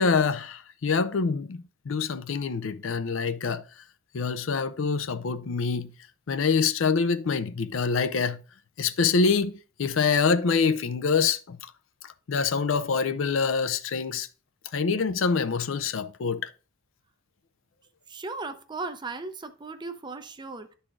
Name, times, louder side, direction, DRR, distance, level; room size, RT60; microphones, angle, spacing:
voice 1, 0.0-3.6 4.1-5.9 6.3-8.4 8.8-11.6 12.0-14.3 14.7-16.5, left 5 dB, 70° left, 0.5 m, -25 dB
voice 2, 18.1-20.7, right 3 dB, 25° right, 0.5 m, -37 dB
12.0 x 4.1 x 2.4 m
head